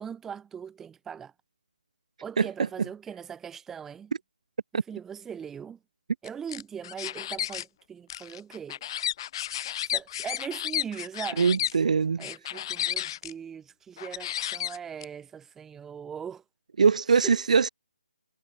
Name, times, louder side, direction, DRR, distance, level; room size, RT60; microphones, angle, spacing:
voice 1, 0.0-1.3 2.2-4.1 4.9-5.8 6.2-8.8 9.9-11.5 12.2-16.4 17.1-17.4, right 7 dB, 10° right, 6.3 m, -40 dB
sound 1, 6.3-7.6 8.1-11.7 12.2-13.3 14.0-15.0, left 11 dB, 30° left, 1.6 m, -32 dB
voice 2, 11.4-12.3 16.8-17.7, right 5 dB, 55° right, 3.1 m, -22 dB
figure-of-eight pair, 150°, 5 cm